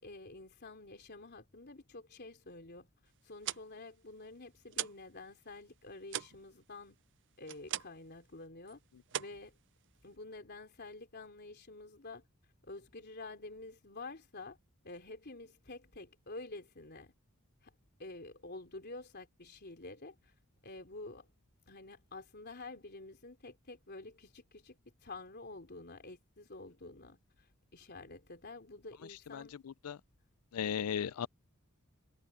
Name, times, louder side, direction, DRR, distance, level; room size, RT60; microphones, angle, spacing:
voice 1, 0.0-2.9 3.2-7.0 7.4-8.8 9.2-9.6 10.0-12.2 12.6-14.6 14.8-17.1 17.6-17.7 18.0-20.3 20.6-21.3 21.7-29.6 31.0-31.3, left 2 dB, 50° left, 3.6 m, -49 dB
sound 1, 3.2-5.1 5.4-8.1 8.4-8.7 9.1-10.2, right 11 dB, 55° right, 0.6 m, -41 dB
voice 2, 30.5-31.3, left 8 dB, 85° left, 0.5 m, -35 dB
head